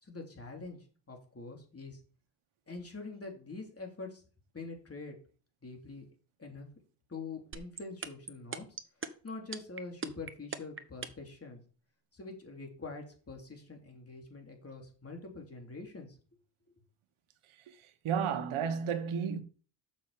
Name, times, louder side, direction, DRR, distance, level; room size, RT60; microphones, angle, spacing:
voice 1, 0.0-2.0 2.7-4.2 4.5-5.2 5.6-6.1 6.4-6.7 7.1-8.8 9.2-11.6 12.1-16.2 16.7-16.8, left 3 dB, 30° left, 3.2 m, -45 dB
sound 1, 7.5-11.3, right 5 dB, 25° right, 1.0 m, -38 dB
voice 2, 18.0-19.4, right 7 dB, 85° right, 1.4 m, -32 dB
6.9 x 6.4 x 6.7 m
cardioid pair, 95°, 48 cm